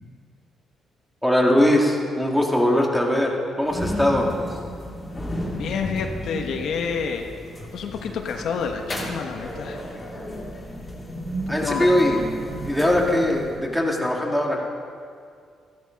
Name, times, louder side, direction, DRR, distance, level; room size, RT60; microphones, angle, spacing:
voice 1, 1.2-4.3 11.5-12.2 12.6-14.6, left 1 dB, ahead, -1 dB, 2.4 m, -21 dB
sound 1, 3.6-13.8, left 1 dB, 15° left, 3.0 m, -33 dB
voice 2, 5.6-7.3 7.7-9.8 11.5-11.9, left 6 dB, 70° left, 4 dB, 1.2 m, -29 dB
14.0 x 12.5 x 5.3 m, 2.2 s
cardioid pair, 90°, 0 cm